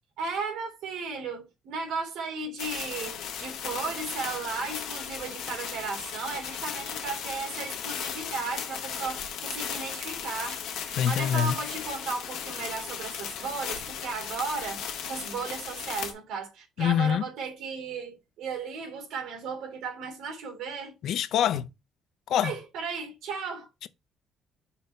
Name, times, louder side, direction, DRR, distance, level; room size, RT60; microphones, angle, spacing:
voice 1, 0.2-21.0 22.4-23.7, right 4 dB, 80° right, 2.7 m, -35 dB
sound 1, 2.6-16.1, left 8 dB, 80° left, 1.5 m, -36 dB
voice 2, 10.9-11.6 16.8-17.2 21.0-21.6 22.3-22.5 23.8-23.9, left 9 dB, 60° left, 0.5 m, -25 dB
5.6 x 4.1 x 4.4 m
cardioid pair, 160°, 0 cm